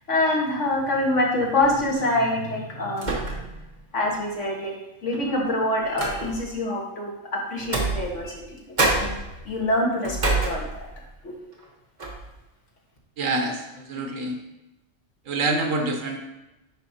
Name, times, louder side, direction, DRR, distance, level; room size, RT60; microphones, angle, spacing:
voice 1, 0.1-3.6 3.9-4.8 5.0-9.2 9.4-10.9 11.2-11.5, left 1 dB, 65° left, -2 dB, 1.9 m, -26 dB
sound 1, 1.6-1.9 3.0-3.7 4.1-4.2 5.1-6.6 7.6-8.5 8.8-11.1 11.5-11.7 12.0-12.3, right 2 dB, 35° right, 1.4 m, -28 dB
voice 2, 13.2-14.4 15.3-16.2, right 2 dB, 80° right, 3 dB, 1.4 m, -26 dB
10.0 x 5.2 x 2.8 m, 0.99 s
omnidirectional pair, 1.4 m